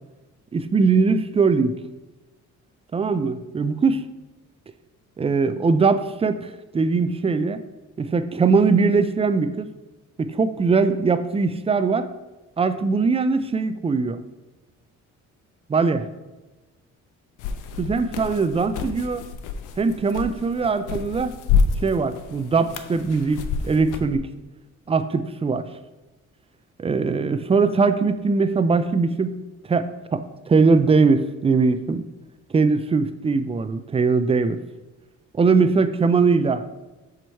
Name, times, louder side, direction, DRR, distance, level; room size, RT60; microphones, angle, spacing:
voice 1, 0.5-1.8 2.9-4.1 5.2-7.6 8.0-9.7 10.2-12.1 12.6-14.2 15.7-16.1 17.8-19.2 19.8-21.3 21.8-24.3 24.9-25.6 26.8-29.4 29.6-32.0 32.5-34.6 35.3-36.7, right 4 dB, 20° right, 11 dB, 0.4 m, -21 dB
sound 1, 17.4-24.2, left 5 dB, 85° left, 0.6 m, -28 dB
6.9 x 3.0 x 4.5 m, 1.1 s
cardioid pair, 90°, 30 cm